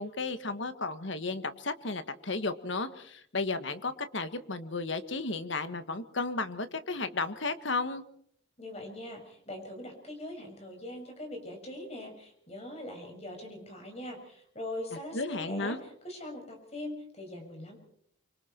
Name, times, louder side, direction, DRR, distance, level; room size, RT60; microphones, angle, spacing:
voice 1, 0.0-8.0 15.1-15.8, left 3 dB, 70° left, 10 dB, 1.7 m, -33 dB
voice 2, 8.6-17.8, left 1 dB, 30° left, 3 dB, 6.4 m, -42 dB
25.5 x 24.5 x 4.6 m, 0.66 s
head